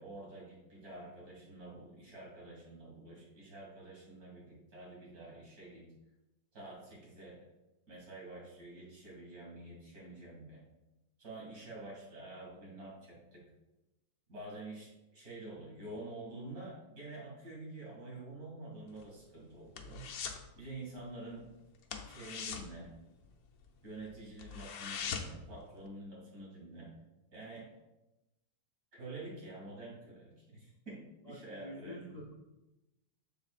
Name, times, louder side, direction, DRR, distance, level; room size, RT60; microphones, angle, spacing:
voice 1, 0.0-5.8 6.5-7.4 7.9-10.6 11.2-13.4 14.3-20.0 20.5-21.5 22.1-22.9 23.8-26.9 27.3-27.7 28.9-32.1, right 2 dB, 60° right, -4 dB, 2.9 m, -48 dB
sound 1, 18.9-20.5 20.8-21.1 21.3-21.5 21.8-23.7 24.1-24.2 24.4-25.5 25.9-26.0, left 6 dB, 70° left, 1.2 m, -41 dB
voice 2, 31.2-32.3, left 1 dB, 50° left, 0 dB, 0.4 m, -48 dB
7.5 x 6.7 x 2.4 m, 0.99 s
omnidirectional pair, 1.8 m